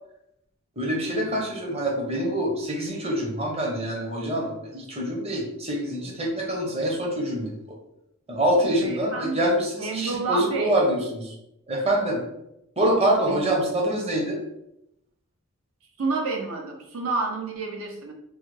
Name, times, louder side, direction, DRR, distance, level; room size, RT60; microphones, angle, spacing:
voice 1, 0.8-7.5 8.3-11.3 11.7-12.2 12.8-14.4, right 1 dB, 25° right, -2 dB, 0.7 m, -25 dB
voice 2, 8.8-9.5 9.8-10.7 13.3-13.4 16.0-18.1, right 3 dB, 70° right, 1 dB, 0.6 m, -29 dB
4.8 x 2.1 x 3.1 m, 0.83 s
head